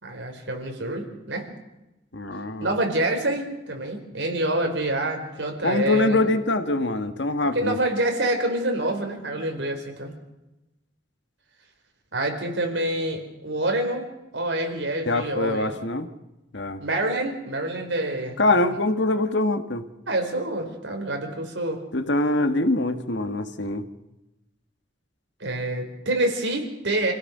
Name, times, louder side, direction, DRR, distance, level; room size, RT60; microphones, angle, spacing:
voice 1, 0.0-1.5 2.6-6.2 7.5-10.1 12.1-14.1 14.3-15.8 16.8-18.8 20.1-21.8 25.4-27.1, right 1 dB, 70° right, 3 dB, 4.6 m, -27 dB
voice 2, 2.1-2.7 5.6-7.8 15.1-16.1 16.5-16.8 18.4-19.9 21.9-23.9, left 2 dB, 65° left, 9 dB, 1.6 m, -24 dB
27.0 x 16.5 x 6.8 m, 0.97 s
head